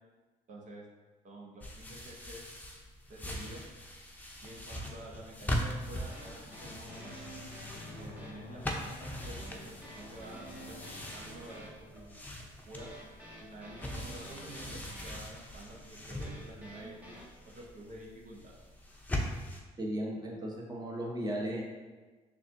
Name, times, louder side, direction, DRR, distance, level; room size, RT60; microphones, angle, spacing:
voice 1, 0.5-0.8 1.2-2.4 3.1-3.6 4.4-7.2 8.0-12.2 12.7-12.9 13.5-16.9 17.5-18.5, right 1 dB, 55° right, -3 dB, 0.9 m, -49 dB
sound 1, 1.6-19.6, equal, 10° left, 0.7 m, -41 dB
sound 2, 5.2-12.2, left 8 dB, 60° left, 0.4 m, -53 dB
sound 3, 6.1-17.3, right 1 dB, 10° right, 1.3 m, -50 dB
voice 2, 19.8-21.6, right 1 dB, 25° right, -2 dB, 1.0 m, -35 dB
6.3 x 2.6 x 2.6 m, 1.3 s
supercardioid pair, 65°, 15 cm